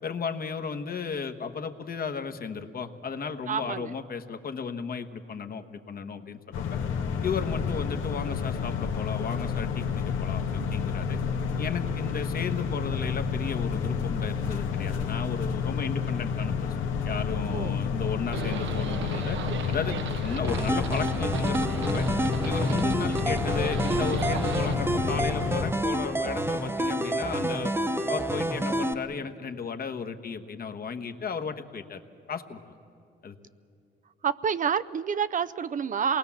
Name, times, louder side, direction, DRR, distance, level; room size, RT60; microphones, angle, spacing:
voice 1, 0.0-6.8 7.2-11.2 11.6-16.7 17.0-19.4 19.7-22.1 22.4-27.7 28.1-32.0 32.3-32.7 33.2-33.3, left 5 dB, 50° left, 7 dB, 1.3 m, -34 dB
voice 2, 3.5-4.0 17.5-17.7 34.2-36.2, right 7 dB, 40° right, 13 dB, 0.5 m, -28 dB
sound 1, 6.5-25.7, left 6 dB, 85° left, 1.4 m, -30 dB
Livestock farm animals working animals, 18.3-24.7, right 8 dB, 70° right, 0.9 m, -37 dB
sound 2, 20.5-28.9, right 1 dB, 10° right, 1.0 m, -29 dB
27.0 x 20.0 x 7.3 m, 2.6 s
cardioid pair, 90°, 20 cm